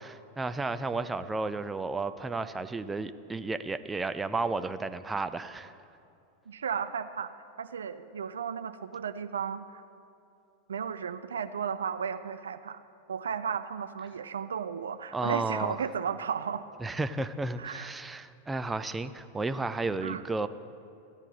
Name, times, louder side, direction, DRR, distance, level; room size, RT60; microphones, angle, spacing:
voice 1, 0.0-5.8 15.1-15.8 16.8-20.5, right 3 dB, 10° right, 11 dB, 0.4 m, -33 dB
voice 2, 6.5-7.3 7.6-9.8 10.7-12.8 13.1-16.7 17.6-17.9 20.0-20.2, right 7 dB, 70° right, 11 dB, 0.5 m, -34 dB
15.0 x 9.0 x 4.1 m, 2.6 s
figure-of-eight pair, 90°, 0 cm